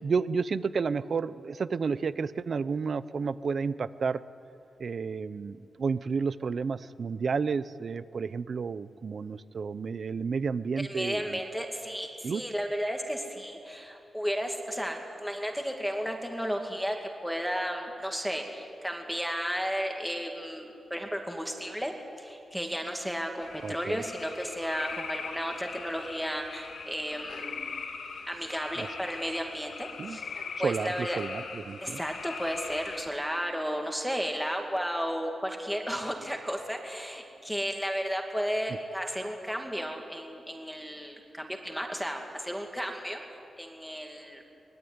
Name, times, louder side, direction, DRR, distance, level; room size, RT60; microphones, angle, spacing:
voice 1, 0.0-4.2 4.8-11.4 12.2-12.4 23.6-24.0 28.8-28.9 30.0-30.2 30.6-32.0, right 5 dB, 45° right, 15 dB, 0.7 m, -31 dB
voice 2, 10.8-17.0 17.2-27.7 28.3-30.3 30.6-31.2 31.8-44.5, equal, ahead, 2 dB, 2.3 m, -33 dB
sound 1, 23.4-33.1, left 5 dB, 90° left, 2.7 m, -41 dB
24.0 x 21.5 x 9.6 m, 2.6 s
wide cardioid pair, 165°, 0 cm